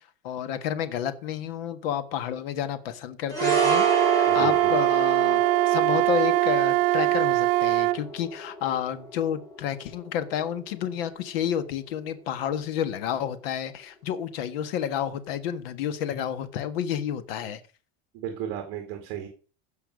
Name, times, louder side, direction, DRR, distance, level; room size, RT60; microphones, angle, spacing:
voice 1, 0.0-3.8 4.1-17.6, left 9 dB, 70° left, 12 dB, 1.5 m, -30 dB
sound 1, 3.3-11.8 12.0-12.2, right 1 dB, 10° left, 2.8 m, -32 dB
Wind instrument woodwind instrument, 3.4-8.0, right 20 dB, 65° right, 0.5 m, -22 dB
voice 2, 4.3-4.8 18.1-19.3, right 10 dB, 45° right, 4 dB, 2.5 m, -34 dB
16.0 x 5.7 x 6.5 m, 0.37 s
cardioid pair, 175°, 30 cm